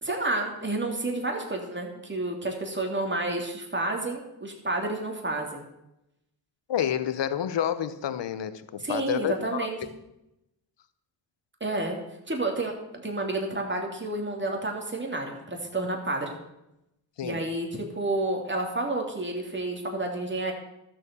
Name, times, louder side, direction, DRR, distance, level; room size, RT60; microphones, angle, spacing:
voice 1, 0.0-5.6 8.8-9.8 11.6-12.0 12.3-12.7 13.0-16.3 17.2-20.5, right 2 dB, 25° right, 1 dB, 3.2 m, -30 dB
voice 2, 6.7-9.7 17.2-17.4, left 9 dB, 65° left, 13 dB, 0.9 m, -29 dB
12.5 x 7.6 x 7.0 m, 0.88 s
cardioid pair, 50°, 45 cm